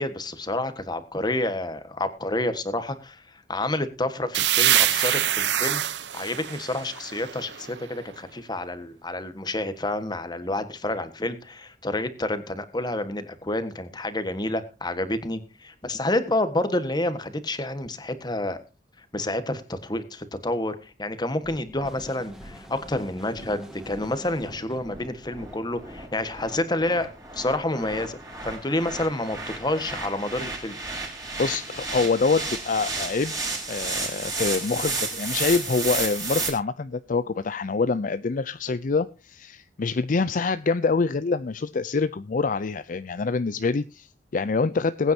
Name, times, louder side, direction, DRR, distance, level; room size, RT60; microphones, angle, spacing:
voice 1, 0.0-5.8 6.1-18.6 19.1-27.1 27.3-30.8, left 1 dB, 25° left, 11 dB, 1.5 m, -29 dB
sound 1, 4.3-8.0, right 11 dB, 80° right, 0.9 m, -25 dB
sound 2, 21.4-36.5, right 3 dB, 20° right, 5.1 m, -33 dB
sound 3, 21.8-25.0, equal, 5° right, 2.2 m, -47 dB
voice 2, 31.4-33.3 33.7-45.1, left 4 dB, 50° left, 13 dB, 0.5 m, -25 dB
21.5 x 9.2 x 2.8 m, 0.32 s
head